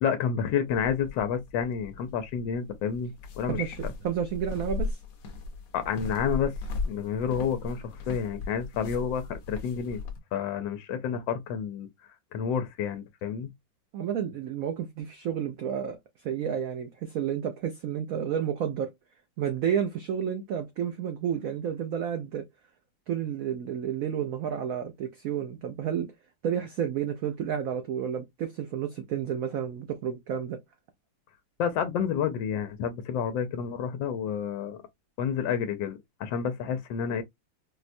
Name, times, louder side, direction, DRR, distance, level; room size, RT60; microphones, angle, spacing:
voice 1, 0.0-3.9 5.7-6.5 6.9-10.0 10.3-11.9 12.3-13.5 31.6-34.8 35.2-37.2, left 7 dB, 80° left, 1.3 m, -30 dB
sound 1, 0.7-10.2, left 3 dB, 60° left, 1.0 m, -37 dB
voice 2, 4.0-5.0 13.9-16.0 16.2-18.9 19.4-22.4 23.1-26.1 26.4-30.6, right 8 dB, 85° right, 0.7 m, -31 dB
4.3 x 2.1 x 2.5 m
omnidirectional pair, 2.1 m